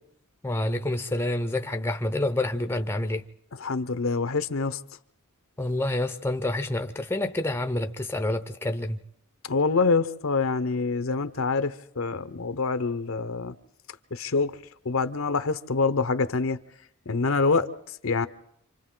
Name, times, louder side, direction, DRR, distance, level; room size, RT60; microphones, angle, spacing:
voice 1, 0.4-3.3 5.6-9.0, left 1 dB, 10° left, 0.7 m, -28 dB
voice 2, 3.6-4.8 9.4-13.5 14.1-14.6 14.8-16.6 17.1-18.3, left 4 dB, 65° left, 0.8 m, -26 dB
27.5 x 25.5 x 3.8 m
head